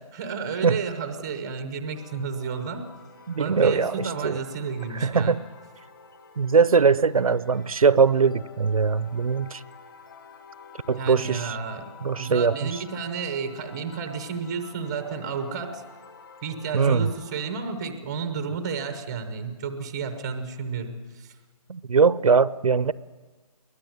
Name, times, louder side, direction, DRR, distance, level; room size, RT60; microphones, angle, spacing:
voice 1, 0.1-2.9 3.4-5.4 10.9-11.9 12.2-15.8 16.4-21.3, right 5 dB, 10° right, 9 dB, 0.7 m, -32 dB
sound 1, 1.9-17.8, left 6 dB, 35° left, 2.1 m, -49 dB
voice 2, 3.3-4.4 4.9-5.4 6.4-9.6 10.9-11.6 12.0-12.7 16.7-17.1 21.7-22.9, right 5 dB, 60° right, 19 dB, 0.7 m, -21 dB
22.5 x 19.0 x 9.2 m, 1.3 s
hypercardioid pair, 175°, 20 cm